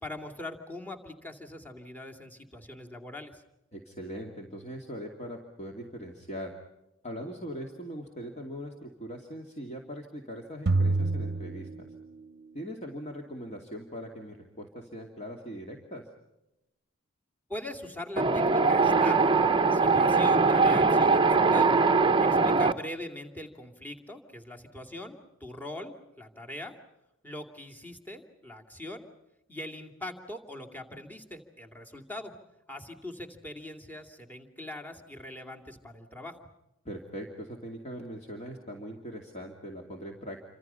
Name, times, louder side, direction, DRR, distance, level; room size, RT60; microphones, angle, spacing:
voice 1, 0.0-3.4 17.5-19.2 19.7-21.8 22.2-26.7 27.2-29.0 29.5-32.3 32.7-36.5, left 1 dB, 10° left, 4 dB, 2.5 m, -41 dB
voice 2, 3.7-6.5 7.0-11.9 12.5-16.0 22.3-22.7 36.8-40.4, equal, 35° left, 1 dB, 2.7 m, -41 dB
sound 1, 10.7-12.5, right 3 dB, 55° right, 0.8 m, -28 dB
Wind, 18.2-22.7, right 4 dB, 25° right, 0.8 m, -22 dB
28.5 x 26.0 x 5.7 m, 0.92 s
head